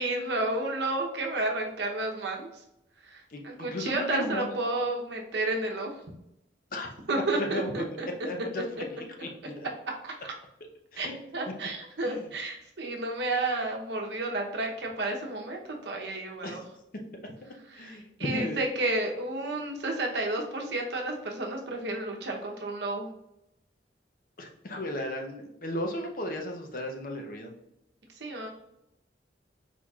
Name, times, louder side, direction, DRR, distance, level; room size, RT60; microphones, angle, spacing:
voice 1, 0.0-2.5 3.0-6.0 7.1-8.1 10.0-10.3 11.0-11.1 11.3-16.6 17.7-23.1 28.2-28.5, right 2 dB, 70° right, 1 dB, 0.8 m, -31 dB
voice 2, 3.3-4.5 6.7-6.9 7.4-7.7 8.2-8.6 9.2-9.6 10.9-11.1 12.1-12.2 16.4-16.6 17.8-18.6 24.4-27.5, left 1 dB, 50° left, 2 dB, 0.6 m, -35 dB
4.4 x 4.0 x 2.3 m, 0.84 s
head